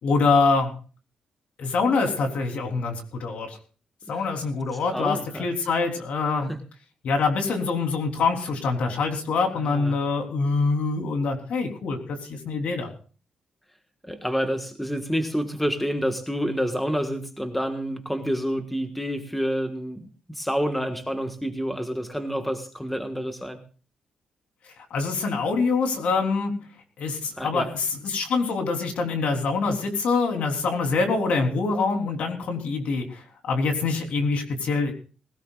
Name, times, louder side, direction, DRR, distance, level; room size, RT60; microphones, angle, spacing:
voice 1, 0.0-0.7 1.6-3.6 4.1-6.5 7.0-12.9 24.8-26.5 27.0-34.9, left 4 dB, 70° left, 3 dB, 3.6 m, -25 dB
voice 2, 4.9-5.5 6.5-6.6 9.6-10.0 14.0-23.6 27.4-27.7, equal, 5° left, 6 dB, 1.5 m, -28 dB
19.5 x 17.5 x 2.5 m, 0.37 s
cardioid pair, 120°, 2 cm